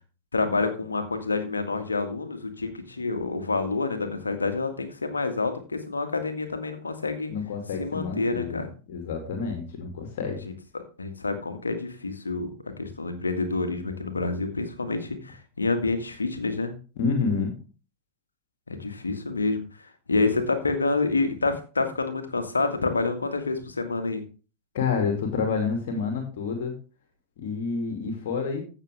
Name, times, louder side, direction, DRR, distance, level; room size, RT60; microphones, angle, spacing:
voice 1, 0.3-7.3 7.8-8.7 10.4-10.5 11.0-12.5 12.8-16.7 18.7-24.2, left 3 dB, 75° left, 7 dB, 1.7 m, -28 dB
voice 2, 7.3-8.6 8.9-10.4 17.0-17.5 24.7-26.7 27.4-28.6, left 5 dB, 55° left, 4 dB, 2.4 m, -28 dB
15.0 x 6.7 x 3.4 m, 0.36 s
figure-of-eight pair, 90°, 0 cm